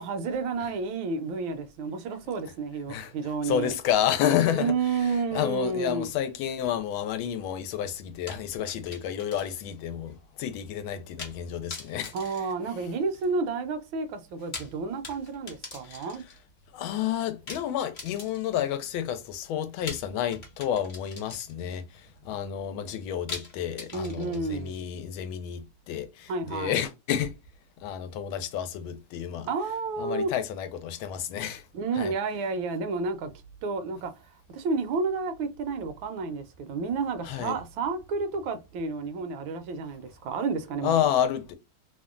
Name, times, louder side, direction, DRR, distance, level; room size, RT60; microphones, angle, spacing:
voice 1, 0.0-3.7 4.5-6.1 12.1-16.2 23.9-24.8 26.3-26.8 29.4-30.3 31.7-33.3 33.6-34.1 34.5-41.1, right 4 dB, 80° right, 1.4 m, -31 dB
voice 2, 3.4-4.7 5.3-12.1 15.9-16.0 16.7-27.3 27.8-29.5 30.0-31.6 32.0-32.1 37.2-37.5 40.8-41.5, left 9 dB, 90° left, 1.4 m, -30 dB
sound 1, 8.3-9.8 10.1-10.2 11.2-11.4 11.7-13.2 14.3-16.4 17.5-18.7 19.9-21.8 23.3-24.7, left 3 dB, 40° left, 0.6 m, -42 dB
3.5 x 2.1 x 2.3 m
omnidirectional pair, 2.2 m